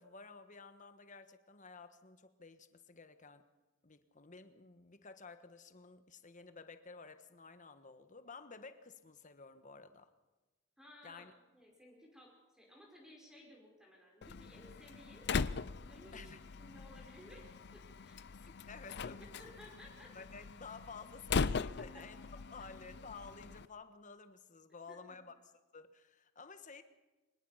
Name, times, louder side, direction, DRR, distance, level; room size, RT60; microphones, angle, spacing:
voice 1, 0.0-3.4 3.8-10.1 11.0-11.3 16.1-16.4 18.7-19.6 20.1-22.2 22.5-25.3 25.7-26.8, left 4 dB, 40° left, 10 dB, 1.4 m, -53 dB
voice 2, 10.8-15.3 15.8-18.5 19.4-20.1 21.8-22.0 22.6-22.7 24.9-25.2, left 1 dB, 5° right, -1 dB, 5.1 m, -58 dB
Slam, 14.2-23.6, left 5 dB, 60° left, 0.6 m, -40 dB
24.0 x 21.0 x 5.7 m, 1.1 s
head